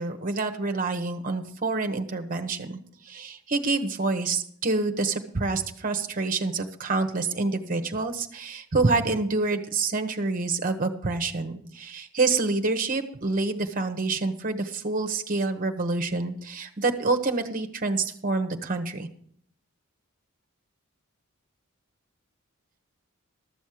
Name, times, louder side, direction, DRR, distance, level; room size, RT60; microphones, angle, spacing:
voice 1, 0.0-19.1, right 3 dB, 40° right, 7 dB, 1.0 m, -27 dB
13.0 x 7.2 x 6.4 m, 0.64 s
head